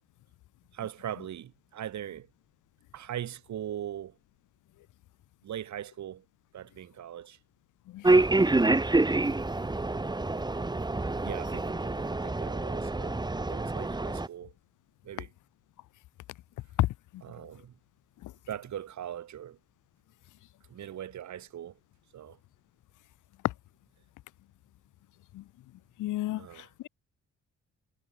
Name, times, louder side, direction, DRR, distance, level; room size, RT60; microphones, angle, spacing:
voice 1, 0.7-2.3 2.9-4.1 5.4-6.2 6.5-7.4 11.2-14.5 15.1-15.3 17.2-17.7 18.5-19.6 20.7-21.7 22.1-22.4 26.4-26.7, right 10 dB, 65° right, 5.1 m, -40 dB
sound 1, 8.0-14.3, right 2 dB, 15° right, 1.8 m, -27 dB
voice 2, 26.0-26.9, left 15 dB, 85° left, 2.3 m, -31 dB
cardioid pair, 90°, 30 cm